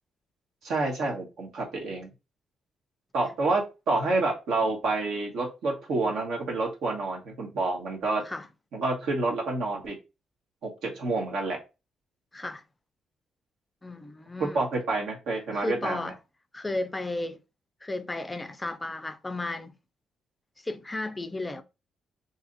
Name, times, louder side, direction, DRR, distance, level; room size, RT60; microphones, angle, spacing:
voice 1, 0.6-2.1 3.1-8.2 8.7-10.0 10.6-11.6 14.4-16.0, right 3 dB, 75° right, 1.2 m, -28 dB
voice 2, 12.3-12.6 13.8-14.6 15.5-16.2 16.5-17.4 17.8-19.8 20.6-21.6, left 2 dB, 15° left, 0.4 m, -34 dB
2.8 x 2.5 x 3.8 m
cardioid pair, 90°, 0 cm